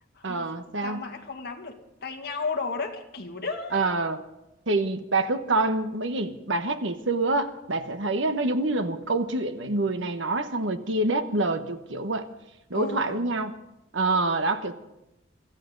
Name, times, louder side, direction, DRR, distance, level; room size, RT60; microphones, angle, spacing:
voice 1, 0.2-1.0 3.7-4.2 4.7-12.3 12.7-13.5 13.9-14.7, right 2 dB, 85° right, 1.2 m, -26 dB
voice 2, 0.8-3.9 12.7-13.3, left 4 dB, 60° left, 2.0 m, -34 dB
24.5 x 14.5 x 4.0 m
head